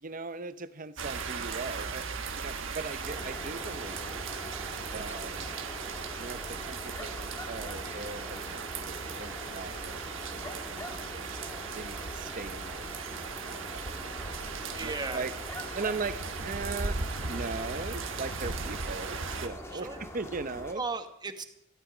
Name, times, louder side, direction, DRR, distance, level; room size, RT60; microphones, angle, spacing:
voice 1, 0.0-4.2 4.9-5.5 6.2-15.3 15.7-17.0 17.3-20.8, right 4 dB, 40° right, 13 dB, 0.7 m, -40 dB
sound 1, 1.0-19.5, right 4 dB, 60° right, 1.4 m, -37 dB
sound 2, 3.0-20.7, left 1 dB, 15° left, 1.7 m, -44 dB
voice 2, 14.7-15.3 19.7-20.0 20.7-21.4, right 3 dB, 20° right, 8 dB, 1.2 m, -36 dB
18.0 x 15.0 x 5.0 m, 0.81 s
head